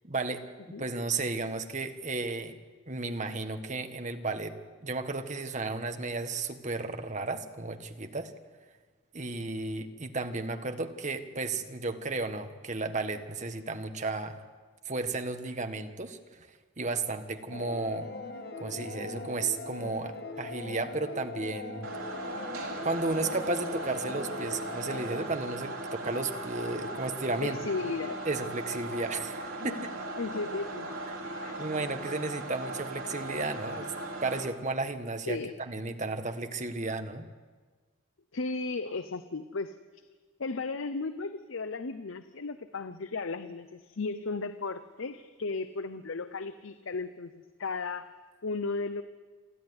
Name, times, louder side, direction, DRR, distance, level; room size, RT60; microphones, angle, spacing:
voice 1, 0.0-0.5 0.8-2.6 2.9-4.6 4.8-8.3 9.1-14.4 14.8-16.5 16.8-18.1 18.6-21.9 22.8-27.6 28.2-29.9 31.1-31.2 31.6-33.9 34.2-37.3, right 3 dB, 35° right, 7 dB, 1.4 m, -33 dB
sound 1, 17.5-25.5, left 3 dB, 50° left, 1.7 m, -41 dB
sound 2, 21.8-34.4, right 2 dB, 80° right, 4.0 m, -38 dB
voice 2, 27.4-28.2 29.6-29.8 30.2-31.6 35.3-35.5 38.3-39.8 40.4-48.1 48.4-49.0, left 3 dB, 70° left, 11 dB, 0.7 m, -35 dB
28.0 x 11.5 x 9.7 m, 1.4 s
head